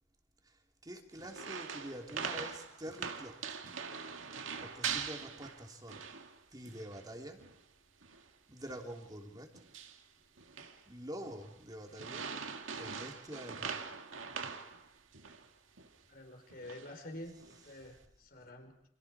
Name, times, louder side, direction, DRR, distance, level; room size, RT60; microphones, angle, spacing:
voice 1, 0.4-3.6 4.6-6.1 6.5-7.4 8.5-9.6 10.8-12.3 12.8-13.8 17.4-17.9, right 1 dB, 20° right, 2 dB, 3.1 m, -47 dB
sound 1, 1.2-6.4 6.6-7.1 7.4-7.6 8.0-8.3 8.7-8.9 9.5-10.0 10.4-10.8 11.2-11.5 11.9-15.5 15.8-15.9 16.5-16.9 17.4-17.8, right 6 dB, 85° right, 2.1 m, -42 dB
voice 2, 16.1-18.9, left 1 dB, 50° left, 5 dB, 5.1 m, -48 dB
29.5 x 27.0 x 4.8 m, 0.69 s
head